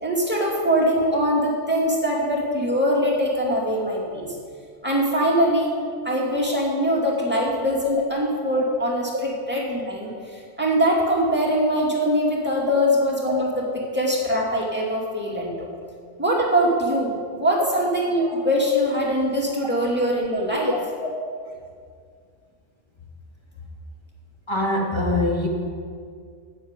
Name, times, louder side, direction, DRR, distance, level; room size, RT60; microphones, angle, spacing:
voice 1, 0.0-4.3 4.8-5.7 6.0-15.7 16.2-20.7, equal, 10° right, -4 dB, 2.5 m, -22 dB
voice 2, 24.5-25.5, left 2 dB, 20° left, -1 dB, 1.8 m, -23 dB
9.3 x 7.7 x 8.9 m, 2.1 s
omnidirectional pair, 1.2 m